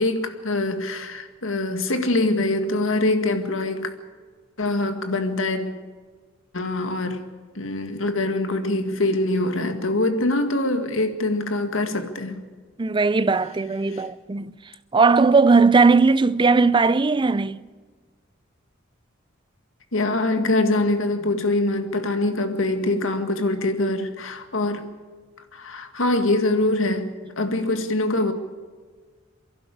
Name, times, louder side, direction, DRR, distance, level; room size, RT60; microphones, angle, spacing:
voice 1, 0.0-3.9 4.6-5.7 6.5-7.3 7.6-12.4 13.9-14.0 19.9-24.9 25.5-28.3, left 2 dB, 75° left, 1.9 m, -24 dB
voice 2, 12.8-14.5 14.9-17.6, right 4 dB, 25° right, 0.5 m, -18 dB
27.5 x 11.5 x 8.6 m
head